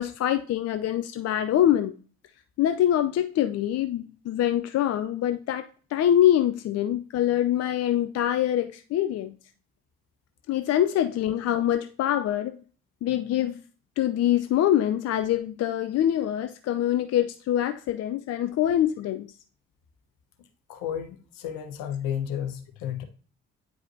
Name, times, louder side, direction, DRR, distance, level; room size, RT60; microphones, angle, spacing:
voice 1, 0.0-1.9 2.6-5.7 5.9-9.3 10.5-12.6 13.0-13.6 14.0-19.3, left 11 dB, 45° left, 0.5 m, -24 dB
voice 2, 20.7-23.0, left 9 dB, 65° left, 1.1 m, -32 dB
9.1 x 4.9 x 2.7 m
figure-of-eight pair, 45°, 36 cm